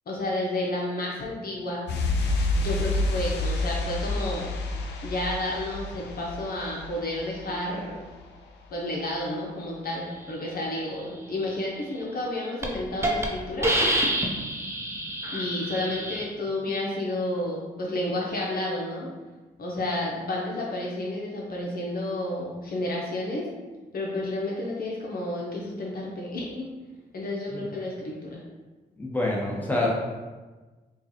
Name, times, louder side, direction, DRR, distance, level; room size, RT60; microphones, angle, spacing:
voice 1, 0.1-1.9 2.5-4.5 5.0-8.0 8.7-13.7 15.3-19.1 19.6-23.4 23.9-26.7 27.1-28.4, left 1 dB, 60° left, -3 dB, 0.8 m, -31 dB
sound 1, 1.9-8.4 8.6-8.8, left 2 dB, 80° left, 0.5 m, -29 dB
Hiss, 12.0-12.2 12.6-12.7 13.0-13.3 13.6-16.2, right 1 dB, 15° right, 0.7 m, -27 dB
voice 2, 29.0-29.9, left 2 dB, 10° left, -4 dB, 1.1 m, -27 dB
4.5 x 2.3 x 3.0 m, 1.3 s
supercardioid pair, 50°, 17 cm